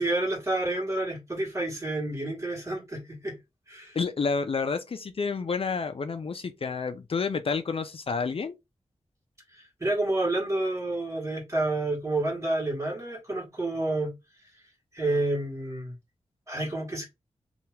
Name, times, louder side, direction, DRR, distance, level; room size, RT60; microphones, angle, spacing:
voice 1, 0.0-3.4 3.7-4.0 9.5-14.1 14.9-15.9 16.5-17.1, right 2 dB, 25° right, 1.5 m, -29 dB
voice 2, 3.9-8.6, left 5 dB, 55° left, 0.4 m, -29 dB
2.8 x 2.4 x 3.1 m
wide cardioid pair, 80°, 11 cm